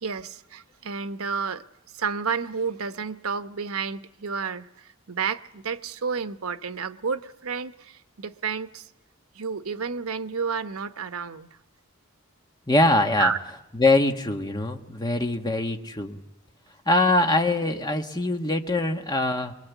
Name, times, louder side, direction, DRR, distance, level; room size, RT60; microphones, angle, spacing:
voice 1, 0.0-1.6 1.9-8.9 9.3-11.5 13.2-13.4, right 6 dB, 85° right, 0.9 m, -30 dB
voice 2, 12.7-16.2 16.8-19.5, left 2 dB, 20° left, 1.5 m, -23 dB
24.5 x 22.0 x 8.2 m
head